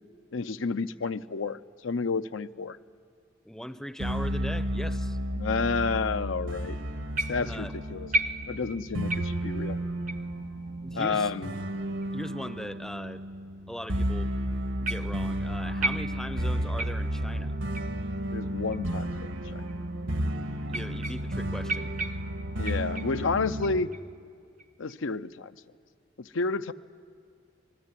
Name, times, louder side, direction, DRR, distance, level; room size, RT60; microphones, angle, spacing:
voice 1, 0.3-2.8 5.4-6.8 7.3-8.1 8.5-9.8 10.9-11.5 18.3-19.6 22.6-23.9 24.8-25.5 26.2-26.7, left 4 dB, 80° left, 11 dB, 0.6 m, -30 dB
voice 2, 3.4-5.2 7.4-7.7 10.8-11.3 12.1-13.2 13.7-14.3 14.8-17.6 20.7-21.9, equal, 5° left, 12 dB, 0.6 m, -39 dB
sound 1, 4.0-23.8, right 1 dB, 75° right, 1.6 m, -32 dB
sound 2, 7.2-7.6 8.1-8.8 9.1-9.5 10.1-10.3 11.0-11.1 12.0-12.1 13.0-13.1 14.9-15.3 15.8-16.4 16.8-17.2 17.8-18.0 18.7-18.8 19.7-19.8 20.7-21.4 21.7-23.2 23.6-24.1 24.6-25.0, right 2 dB, 40° right, 0.7 m, -34 dB
27.0 x 20.5 x 9.9 m, 2.2 s
head